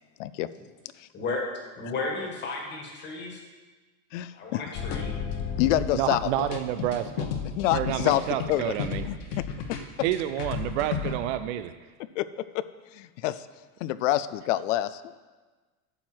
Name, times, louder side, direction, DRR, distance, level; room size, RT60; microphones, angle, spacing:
voice 1, 1.7-3.4 4.3-5.1, left 3 dB, 25° left, 0 dB, 1.6 m, -33 dB
voice 2, 4.1-4.6 5.6-6.5 7.6-8.2 8.5-8.7 9.0-9.4 12.2-12.6 12.9-13.5 13.8-15.1, left 14 dB, 60° left, 15 dB, 0.5 m, -27 dB
sound 1, 4.7-11.2, left 6 dB, 40° left, 1.0 m, -33 dB
voice 3, 5.9-7.3 7.7-9.0 10.0-11.7, right 12 dB, 55° right, 10 dB, 0.5 m, -29 dB
12.0 x 7.9 x 4.5 m, 1.3 s
supercardioid pair, 165°, 44 cm